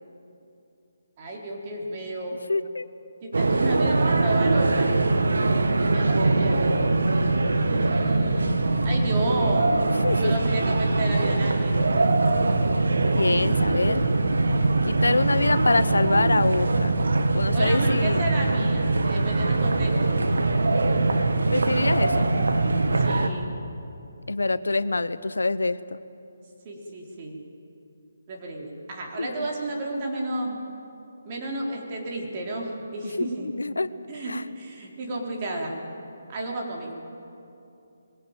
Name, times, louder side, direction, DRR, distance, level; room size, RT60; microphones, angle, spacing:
voice 1, 1.2-2.4 3.2-4.9 5.8-6.8 7.6-9.7 10.2-11.8 17.5-20.2 23.0-23.5 26.6-27.4 28.3-30.6 31.2-33.5 34.1-35.8 36.3-36.9, right 1 dB, 35° right, -1 dB, 4.0 m, -32 dB
voice 2, 2.5-2.9 10.0-10.3 13.1-14.0 14.9-16.9 17.3-18.3 21.5-22.3 24.3-25.8 29.2-29.3 33.2-33.9 34.3-34.4, left 3 dB, 90° left, 14 dB, 0.8 m, -25 dB
sound 1, 3.3-23.3, right 2 dB, 80° right, 1.6 m, -22 dB
21.5 x 17.0 x 9.1 m, 2.7 s
figure-of-eight pair, 155°, 0 cm